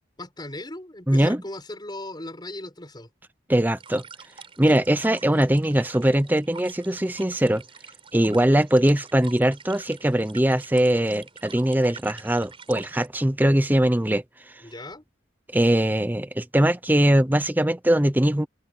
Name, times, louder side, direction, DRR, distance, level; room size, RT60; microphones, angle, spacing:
voice 1, 0.2-3.1 14.6-15.0, left 1 dB, 20° left, 6.8 m, -37 dB
voice 2, 1.1-1.4 3.5-4.0 4.6-7.6 8.1-14.2 15.5-18.5, right 1 dB, 10° right, 0.7 m, -21 dB
sound 1, 3.8-13.1, right 5 dB, 30° right, 5.0 m, -46 dB
open air
head